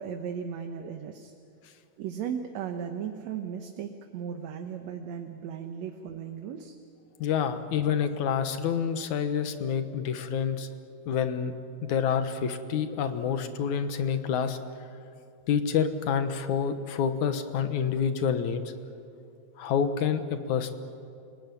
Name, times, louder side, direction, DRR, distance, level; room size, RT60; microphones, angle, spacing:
voice 1, 0.0-1.3 2.0-6.7, right 7 dB, 70° right, 5 dB, 2.3 m, -36 dB
voice 2, 7.2-10.7 11.1-11.5 11.8-14.6 15.5-18.7 19.6-20.7, left 7 dB, 90° left, 9 dB, 2.7 m, -28 dB
28.0 x 18.0 x 9.9 m, 2.5 s
omnidirectional pair, 3.3 m